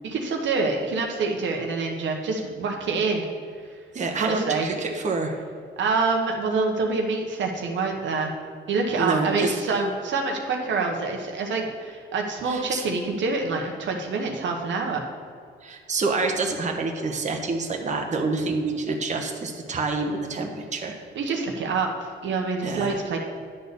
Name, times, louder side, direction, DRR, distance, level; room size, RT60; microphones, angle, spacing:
voice 1, 0.0-3.3 4.2-4.7 5.8-8.3 8.7-15.0 21.1-21.9 22.2-23.2, right 4 dB, 70° right, 2 dB, 1.2 m, -26 dB
voice 2, 3.9-5.3 9.0-9.5 12.5-12.8 15.6-21.0 22.6-23.0, right 3 dB, 35° right, 2 dB, 1.1 m, -27 dB
10.0 x 4.1 x 6.8 m, 2.2 s
cardioid pair, 90°, 20 cm